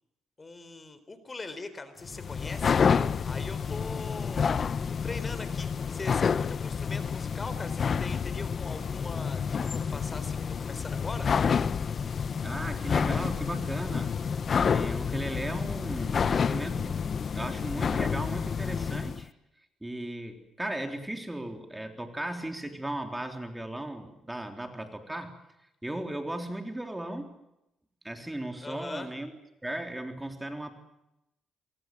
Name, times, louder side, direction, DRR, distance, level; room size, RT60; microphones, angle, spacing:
voice 1, 0.4-2.8 3.2-4.7 5.0-11.3 28.6-29.1, left 3 dB, 25° left, 12 dB, 4.0 m, -41 dB
sound 1, 2.0-19.2, left 6 dB, 45° left, 1.0 m, -29 dB
voice 2, 12.4-14.1 14.5-17.0 17.3-19.3 19.8-25.4 25.8-27.3 28.0-29.3 29.6-30.7, right 1 dB, 10° right, 5 dB, 3.6 m, -36 dB
26.5 x 24.0 x 7.7 m, 0.89 s
cardioid pair, 90°, 0 cm